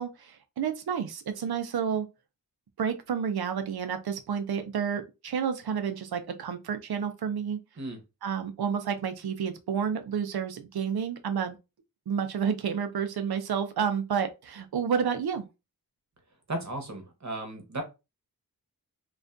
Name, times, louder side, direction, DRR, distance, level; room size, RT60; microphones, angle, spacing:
voice 1, 0.0-2.1 2.8-7.6 8.2-11.6 12.1-15.5, right 7 dB, 85° right, 0.5 m, -30 dB
voice 2, 16.5-17.8, right 2 dB, 50° right, 0.9 m, -35 dB
2.4 x 2.2 x 2.4 m
wide cardioid pair, 60°, 37 cm